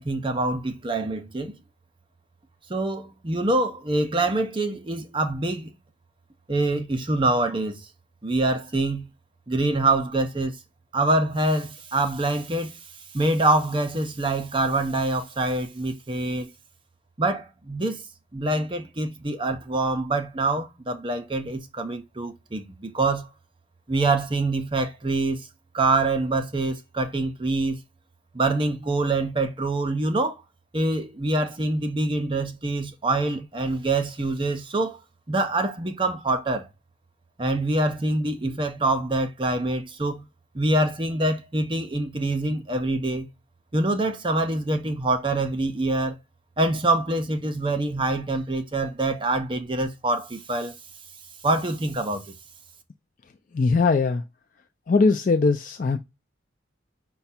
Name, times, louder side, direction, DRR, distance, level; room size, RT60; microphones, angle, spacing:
voice 1, 0.0-1.5 2.7-5.7 6.5-7.9 8.2-9.1 9.5-10.5 10.9-12.8 13.1-16.5 17.2-18.0 18.3-23.3 23.9-25.5 25.7-27.8 28.3-30.4 30.7-35.0 35.3-36.7 37.4-40.2 40.5-43.3 43.7-46.2 46.6-50.7 51.4-52.2, right 2 dB, 25° right, 0.6 m, -25 dB
voice 2, 53.5-54.2 54.9-56.0, left 4 dB, 40° left, 0.4 m, -20 dB
5.7 x 2.2 x 4.2 m
head